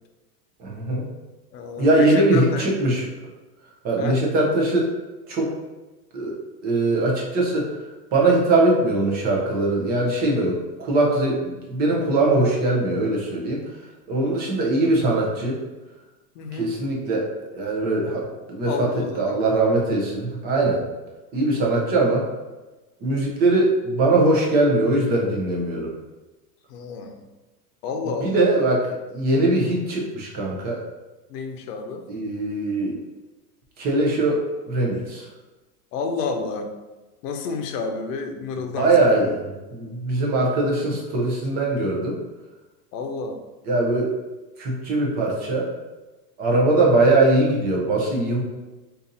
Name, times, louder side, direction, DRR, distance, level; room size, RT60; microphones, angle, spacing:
voice 1, 0.6-1.1 1.8-3.1 3.8-4.9 5.3-5.5 6.1-6.3 6.6-13.6 14.1-15.6 16.5-17.2 17.5-18.9 19.2-20.8 21.3-22.3 23.0-25.9 28.2-28.8 29.1-30.8 32.1-33.0 33.8-35.3 38.8-42.2 43.7-44.1 44.6-45.7 46.4-48.4, right 2 dB, 20° right, -2 dB, 0.5 m, -21 dB
voice 2, 1.5-2.6 4.0-4.2 16.3-16.7 18.6-19.4 26.7-27.2 27.8-28.5 31.3-32.1 35.9-36.7 37.2-39.2 42.9-43.4, left 4 dB, 70° left, 5 dB, 0.7 m, -30 dB
2.6 x 2.6 x 3.9 m, 1.1 s
supercardioid pair, 135°, 49 cm